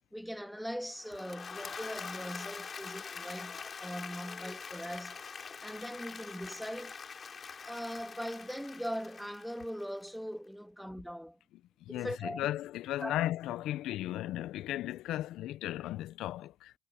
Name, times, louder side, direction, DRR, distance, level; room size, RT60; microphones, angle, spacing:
voice 1, 0.1-5.2 5.6-7.0 7.7-11.4 11.9-12.5 13.0-13.2, equal, ahead, 2.7 m, -40 dB
Applause / Crowd, 0.9-10.1, left 5 dB, 40° left, 6.5 m, -44 dB
voice 2, 11.8-16.7, left 14 dB, 70° left, 1.0 m, -36 dB
hypercardioid pair, 55°, 0 cm